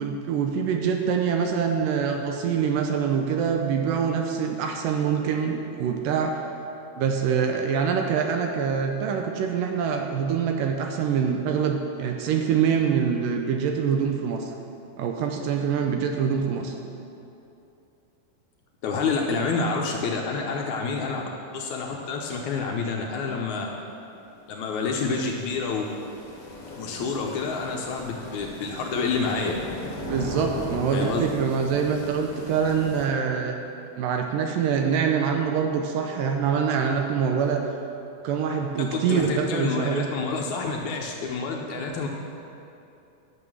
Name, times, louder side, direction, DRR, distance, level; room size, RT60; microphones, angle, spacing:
voice 1, 0.0-6.4 7.0-14.5 15.0-16.7 30.0-33.6 34.0-37.6 38.2-40.1, right 7 dB, 80° right, 3 dB, 2.2 m, -25 dB
voice 2, 18.8-21.2 21.5-23.7 24.5-25.8 26.7-29.6 30.9-31.2 38.8-42.1, left 4 dB, 75° left, 0 dB, 1.8 m, -28 dB
sound 1, 24.1-33.1, left 1 dB, 40° left, 1.2 m, -38 dB
11.0 x 6.9 x 6.2 m, 2.7 s
omnidirectional pair, 4.2 m